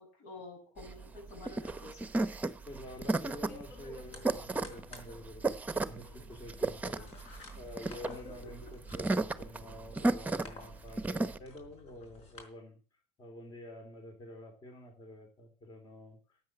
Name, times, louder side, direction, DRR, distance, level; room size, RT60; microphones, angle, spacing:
voice 1, 0.0-2.1, left 2 dB, 80° left, 3 dB, 6.8 m, -49 dB
sound 1, 0.8-11.4, right 2 dB, 10° right, 0.9 m, -34 dB
voice 2, 2.6-12.8 13.2-16.4, left 1 dB, 35° left, 4 dB, 3.5 m, -49 dB
sound 2, 2.7-12.4, left 3 dB, 60° left, 4.6 m, -53 dB
12.5 x 8.7 x 7.6 m, 0.38 s
cardioid pair, 120°, 12 cm